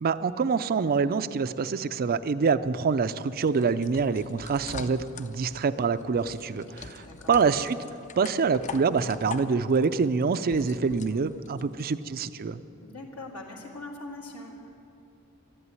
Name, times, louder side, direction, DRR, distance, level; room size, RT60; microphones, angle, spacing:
voice 1, 0.0-7.8 8.2-12.6, right 5 dB, 45° right, 13 dB, 0.4 m, -26 dB
sound 1, 3.1-11.9, left 5 dB, 35° left, 0.6 m, -43 dB
voice 2, 6.7-7.3 10.9-11.2 12.8-14.5, left 2 dB, 75° left, -3 dB, 2.1 m, -42 dB
12.5 x 11.0 x 9.6 m, 2.6 s
head